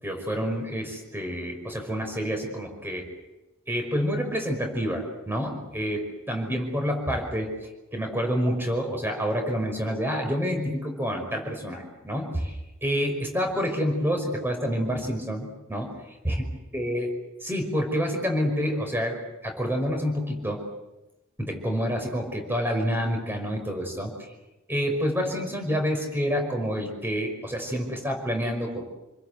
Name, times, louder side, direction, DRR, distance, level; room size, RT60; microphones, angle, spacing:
voice 1, 0.0-3.1 3.7-7.5 7.9-12.6 12.8-16.0 16.2-16.4 16.7-17.1 17.4-20.7 21.4-24.3 24.7-28.8, equal, 10° right, 3 dB, 5.6 m, -28 dB
29.0 x 21.0 x 8.1 m, 0.99 s
head